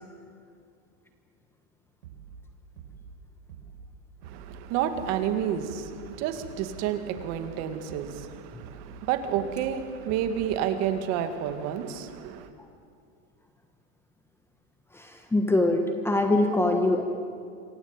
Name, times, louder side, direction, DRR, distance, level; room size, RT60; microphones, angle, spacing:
sound 1, 2.0-2.4 2.8-3.1 3.5-3.9 4.2-4.6 5.0-5.3 5.7-6.1 6.4-6.8 7.1-7.5 7.9-8.3 8.6-9.0 9.3-9.7 10.1-10.5, right 7 dB, 80° right, 5.4 m, -46 dB
voice 1, 4.3-12.5, right 9 dB, 40° right, 2.2 m, -30 dB
voice 2, 14.9-17.0, left 2 dB, 5° left, 1.3 m, -23 dB
27.0 x 23.5 x 9.1 m
supercardioid pair, 165°, 40 cm